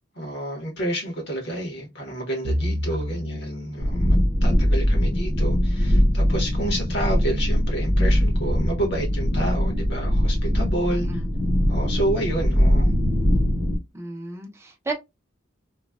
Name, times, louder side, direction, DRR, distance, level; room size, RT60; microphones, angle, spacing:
voice 1, 0.1-11.1 11.7-12.9, right 1 dB, 60° left, 1.3 m, -29 dB
Bowed string instrument, 2.4-6.8, equal, 70° right, 0.4 m, -33 dB
sound 1, 3.8-13.8, equal, 15° left, 0.8 m, -21 dB
voice 2, 10.9-11.3 13.9-14.9, right 2 dB, 15° right, 0.6 m, -33 dB
3.1 x 2.2 x 2.3 m
head